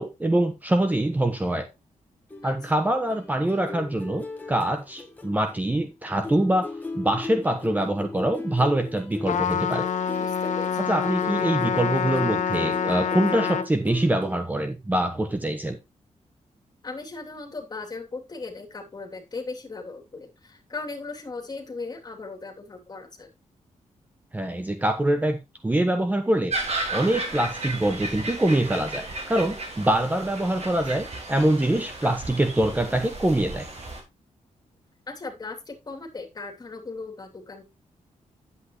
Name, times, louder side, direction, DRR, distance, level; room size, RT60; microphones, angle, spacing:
voice 1, 0.0-1.7 2.4-9.8 10.8-15.8 24.3-25.4 25.6-26.5 26.9-33.7, right 1 dB, 15° right, 7 dB, 1.1 m, -24 dB
sound 1, 2.3-5.9 6.2-14.4, left 3 dB, 10° left, 2.0 m, -37 dB
Trumpet, 9.3-13.7, left 7 dB, 70° left, 0.9 m, -26 dB
voice 2, 10.2-10.8 16.8-23.3 27.3-27.4 32.0-32.1 35.1-37.6, left 3 dB, 30° left, 2 dB, 2.9 m, -37 dB
sound 2, 26.5-34.0, right 2 dB, 55° right, 5.0 m, -34 dB
10.5 x 8.2 x 3.1 m, 0.24 s
wide cardioid pair, 145°, 13 cm